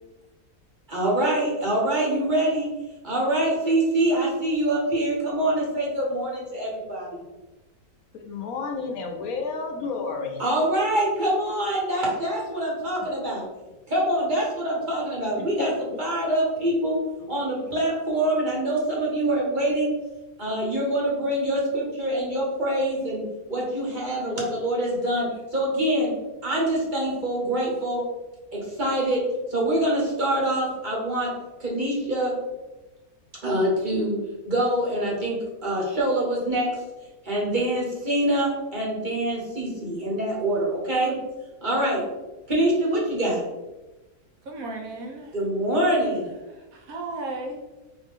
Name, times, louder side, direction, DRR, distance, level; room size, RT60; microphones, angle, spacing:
voice 1, 0.9-2.7 3.0-7.2 10.4-13.4 13.9-15.7 16.0-17.0 17.3-19.9 20.4-23.2 23.5-26.1 26.4-28.0 28.5-29.2 29.5-31.3 31.6-32.3 33.4-34.2 34.4-36.7 37.2-41.1 41.6-42.1 42.5-43.4 45.3-46.3, right 1 dB, 35° right, -4 dB, 1.1 m, -25 dB
voice 2, 8.1-10.4 15.6-15.7, left 4 dB, 70° left, 3 dB, 1.0 m, -31 dB
voice 3, 44.4-45.4 46.0-46.1 46.5-47.6, right 2 dB, 70° right, 2 dB, 1.1 m, -35 dB
4.2 x 2.6 x 3.6 m, 1.1 s
omnidirectional pair, 1.6 m